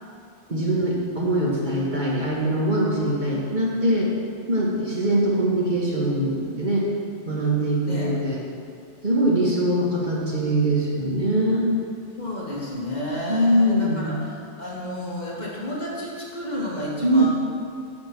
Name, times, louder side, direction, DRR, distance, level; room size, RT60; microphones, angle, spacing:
voice 1, 0.5-4.1 4.5-6.9 7.2-8.4 9.0-11.7 13.3-14.1 17.0-17.3, right 1 dB, 40° right, -5 dB, 1.8 m, -22 dB
voice 2, 7.9-8.3 12.2-17.3, left 1 dB, 35° left, -5 dB, 1.9 m, -31 dB
9.0 x 7.2 x 6.0 m, 2.4 s
omnidirectional pair, 1.2 m